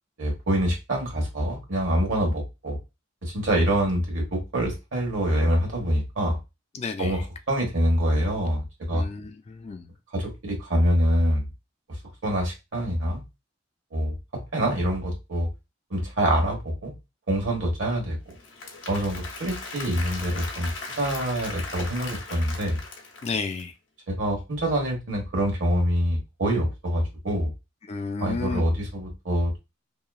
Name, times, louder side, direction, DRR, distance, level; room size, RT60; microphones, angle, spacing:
voice 1, 0.2-2.8 3.2-6.4 7.0-9.0 10.1-11.4 12.2-13.2 13.9-15.5 15.9-16.9 17.3-18.2 18.9-20.7 21.0-22.8 24.1-27.5 28.2-29.6, equal, 80° right, 1.3 m, -25 dB
voice 2, 6.7-7.2 8.9-9.9 23.2-23.7 27.9-28.6, left 4 dB, 35° left, 0.3 m, -32 dB
Applause / Crowd, 18.3-23.6, left 3 dB, 75° left, 0.7 m, -38 dB
2.8 x 2.3 x 2.3 m
head